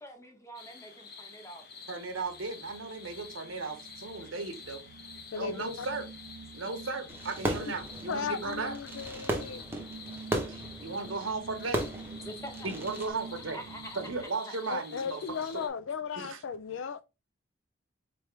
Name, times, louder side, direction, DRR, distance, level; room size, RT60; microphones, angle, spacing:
voice 1, 0.0-1.6 9.5-9.6 12.2-14.0 14.5-14.6, right 1 dB, 15° left, 1.0 m, -46 dB
sound 1, 0.5-15.7, left 5 dB, 50° left, 0.8 m, -49 dB
sound 2, 1.8-14.2, right 4 dB, 65° right, 0.3 m, -48 dB
voice 2, 1.9-4.8 5.4-6.1 6.5-8.7 10.5-11.8 12.6-13.6 14.0-15.2 15.5-15.6 16.2-16.4, right 3 dB, 85° right, 1.0 m, -36 dB
voice 3, 5.3-5.9 8.1-9.6 14.7-17.0, left 6 dB, 75° left, 0.4 m, -36 dB
Fireworks, 7.1-13.1, right 1 dB, 10° right, 0.8 m, -36 dB
4.3 x 3.4 x 3.2 m
head